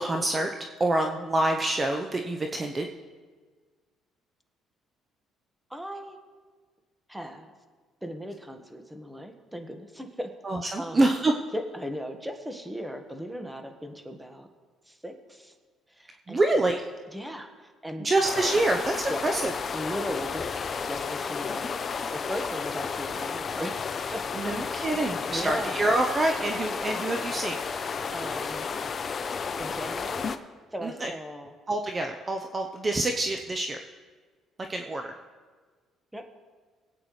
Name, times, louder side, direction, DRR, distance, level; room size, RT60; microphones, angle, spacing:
voice 1, 0.0-2.9 10.4-11.3 16.3-16.8 18.0-19.5 24.3-27.6 30.8-31.1 31.7-33.8 34.7-35.1, right 2 dB, 30° right, 4 dB, 0.8 m, -26 dB
voice 2, 5.7-6.2 7.1-7.5 8.0-10.3 10.8-11.0 11.5-14.5 14.9-15.5 16.0-16.4 17.1-18.1 19.1-19.2 19.7-20.6 20.9-24.2 25.3-25.8 28.1-28.7 29.6-30.3 30.7-31.5 36.1-36.2, equal, 5° right, 5 dB, 1.5 m, -37 dB
sound 1, 18.2-30.4, left 5 dB, 45° left, 0.7 m, -32 dB
21.5 x 8.8 x 3.3 m, 1.5 s
supercardioid pair, 75°, 0 cm